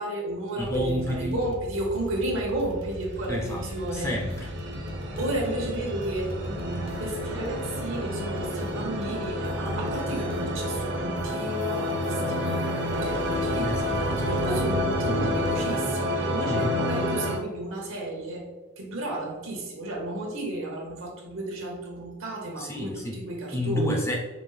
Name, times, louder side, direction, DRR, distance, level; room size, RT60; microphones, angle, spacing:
voice 1, 0.0-4.1 5.2-13.7 14.2-18.4 18.8-24.0, right 1 dB, 70° right, -1 dB, 1.0 m, -33 dB
sound 1, 0.6-16.2, equal, 80° left, 0.5 m, -40 dB
voice 2, 0.6-1.5 3.3-3.6 3.9-4.5 13.6-14.3 16.5-16.7 22.6-23.2 23.5-24.2, left 1 dB, 15° left, 0 dB, 0.4 m, -30 dB
sound 2, 3.0-17.4, equal, 50° right, 0.7 m, -29 dB
5.0 x 2.1 x 3.2 m, 1.3 s
head